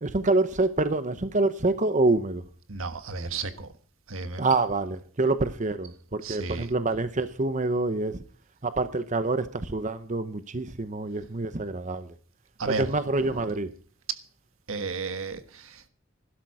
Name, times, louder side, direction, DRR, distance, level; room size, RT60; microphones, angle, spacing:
voice 1, 0.0-2.4 4.4-8.2 8.6-12.1 12.7-13.7, right 2 dB, 40° right, 0.9 m, -26 dB
voice 2, 2.7-3.7 4.1-4.5 6.2-6.7 12.6-12.8 13.2-13.5 14.7-15.9, right 4 dB, 85° right, 1.5 m, -33 dB
16.0 x 12.0 x 4.9 m
head